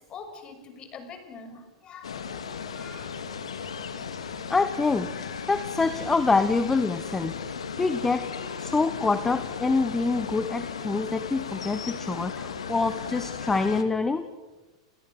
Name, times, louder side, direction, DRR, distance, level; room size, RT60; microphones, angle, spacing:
voice 1, 0.1-3.1 12.3-12.5, left 5 dB, 30° left, 7 dB, 6.1 m, -45 dB
sound 1, 2.0-13.8, left 6 dB, 70° left, 2.5 m, -36 dB
voice 2, 4.5-7.4 7.8-8.3 8.6-14.3, left 3 dB, 10° left, 11 dB, 1.4 m, -26 dB
30.0 x 29.5 x 6.4 m, 1.2 s
figure-of-eight pair, 100°, 3 cm